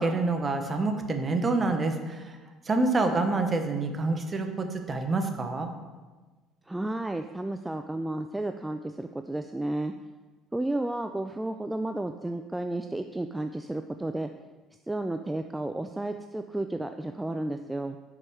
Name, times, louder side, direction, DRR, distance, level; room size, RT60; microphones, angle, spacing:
voice 1, 0.0-2.3 2.7-5.7, right 3 dB, 30° right, 5 dB, 0.9 m, -27 dB
voice 2, 6.7-9.9 10.5-14.3 14.9-18.0, right 1 dB, 10° right, 7 dB, 0.3 m, -32 dB
5.3 x 5.3 x 4.6 m, 1.3 s
hypercardioid pair, 60°, 0 cm